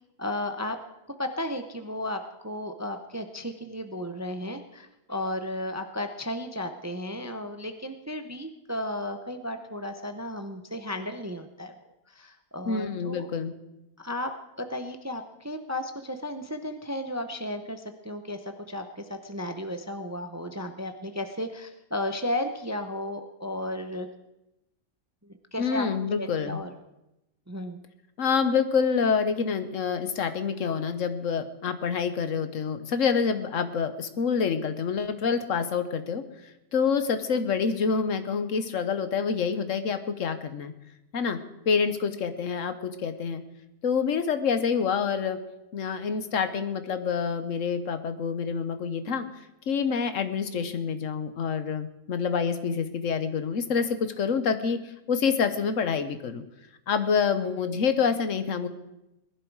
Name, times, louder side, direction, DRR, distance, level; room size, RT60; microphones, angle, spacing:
voice 1, 0.2-0.8 1.2-11.7 12.1-13.3 14.0-24.1 25.2-25.9 26.2-26.7 27.5-27.8, left 1 dB, 20° right, 7 dB, 0.5 m, -34 dB
voice 2, 12.6-13.5 25.6-26.6 28.2-36.2 36.7-40.7 41.1-41.4 41.6-43.4 43.8-45.4 45.7-49.2 49.7-56.4 56.9-58.7, left 6 dB, 60° left, 10 dB, 1.3 m, -27 dB
20.0 x 11.5 x 4.7 m, 0.93 s
omnidirectional pair, 1.5 m